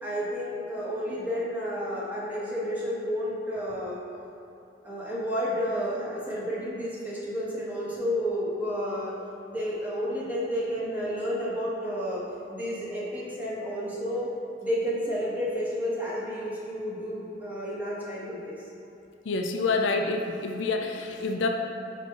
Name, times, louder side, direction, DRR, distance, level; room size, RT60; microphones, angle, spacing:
voice 1, 0.0-4.0 4.8-9.1 9.5-14.3 14.6-18.6, equal, 10° right, -7 dB, 1.3 m, -31 dB
voice 2, 19.2-21.5, left 3 dB, 70° left, 3 dB, 0.4 m, -27 dB
4.5 x 4.0 x 5.4 m, 2.9 s
head